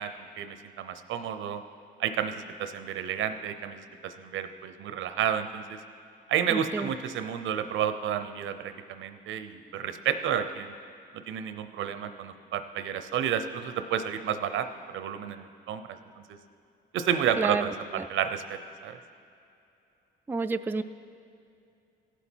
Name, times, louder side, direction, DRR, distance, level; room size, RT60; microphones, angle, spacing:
voice 1, 0.0-1.6 2.0-5.8 6.3-10.7 11.1-16.0 16.3-16.4 16.9-19.0, right 9 dB, 80° right, 10 dB, 0.6 m, -31 dB
voice 2, 6.5-6.9 17.4-18.1 20.3-20.8, right 3 dB, 10° right, 8 dB, 0.3 m, -30 dB
16.0 x 7.2 x 4.5 m, 2.6 s
cardioid pair, 90°, 20 cm